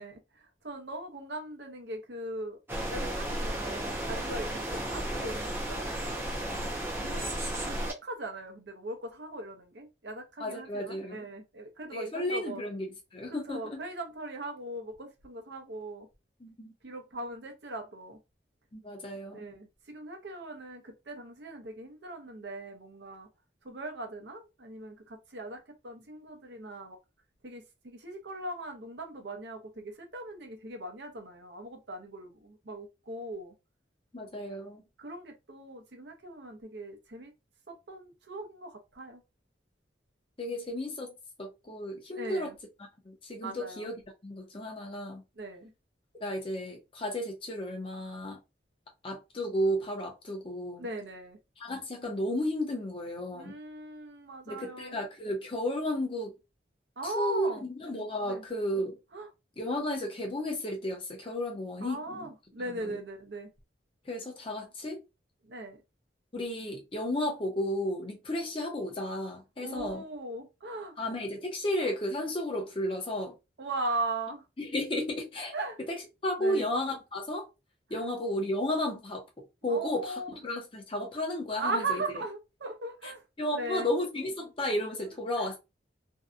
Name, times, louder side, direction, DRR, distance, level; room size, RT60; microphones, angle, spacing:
voice 1, 0.0-2.6 2.9-6.3 7.0-12.6 13.3-16.1 16.8-18.2 19.3-23.3 23.6-27.0 27.4-33.5 35.0-37.3 37.7-39.2 42.1-42.6 43.4-43.9 45.4-45.7 50.8-51.4 53.3-55.0 57.0-57.6 58.3-58.4 59.1-59.3 61.8-63.5 65.4-65.8 69.6-71.0 73.6-74.4 75.5-75.8 76.4-76.7 77.9-78.1 79.7-80.4 81.5-83.2 83.5-83.9 85.3-85.5, right 2 dB, 70° right, 0.7 m, -39 dB
sound 1, 2.7-7.9, right 1 dB, 10° right, 0.5 m, -33 dB
voice 2, 10.4-11.2 11.9-12.9 13.1-13.8 16.4-16.7 18.7-19.5 34.1-34.8 40.4-41.1 41.4-42.5 43.1-43.9 44.2-45.2 46.2-48.4 49.0-50.8 51.6-53.5 54.5-56.3 57.0-57.5 57.8-59.0 59.6-62.3 62.7-63.0 64.1-65.0 66.3-70.0 71.0-73.3 74.6-75.5 75.9-76.0 76.2-77.5 77.9-79.2 79.6-80.1 80.4-82.0 83.4-85.6, left 1 dB, 30° left, 0.6 m, -33 dB
2.7 x 2.2 x 2.4 m
head